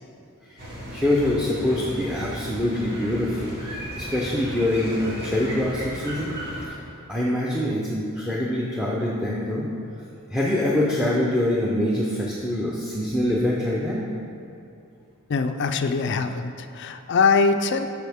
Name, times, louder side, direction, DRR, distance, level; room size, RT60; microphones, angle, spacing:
sound 1, 0.6-6.6, equal, 50° right, 2.0 m, -35 dB
voice 1, 0.9-6.3 6.7-6.8 7.1-9.7 10.3-14.1, left 1 dB, 5° right, -5 dB, 0.6 m, -24 dB
voice 2, 15.3-17.9, left 4 dB, 50° left, 7 dB, 0.4 m, -22 dB
12.5 x 4.9 x 3.5 m, 2.7 s
head